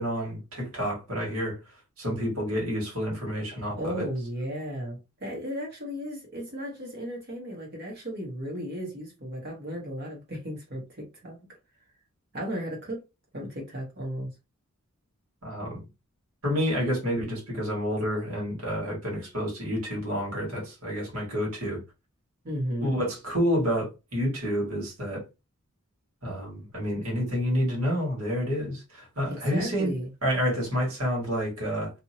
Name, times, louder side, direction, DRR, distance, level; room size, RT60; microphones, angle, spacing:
voice 1, 0.0-1.6 2.0-4.0 15.4-15.8 16.4-21.8 22.8-25.2 26.2-29.9 30.2-31.9, equal, 75° right, 1.8 m, -29 dB
voice 2, 3.8-11.4 12.3-13.0 13.3-14.3 22.4-23.0 29.3-30.1, equal, 45° right, 1.1 m, -35 dB
2.8 x 2.7 x 2.7 m
head